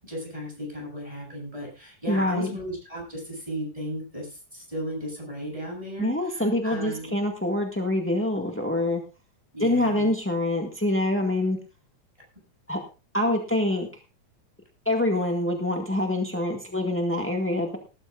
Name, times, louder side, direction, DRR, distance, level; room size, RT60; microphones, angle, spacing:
voice 1, 0.0-7.1 9.5-10.1, equal, 10° right, -1 dB, 7.6 m, -35 dB
voice 2, 2.1-2.5 6.0-9.0 9.6-11.6 12.7-12.8 13.1-13.9 14.8-17.8, left 1 dB, 10° left, 2 dB, 0.8 m, -25 dB
19.5 x 12.5 x 2.5 m, 0.31 s
omnidirectional pair, 3.6 m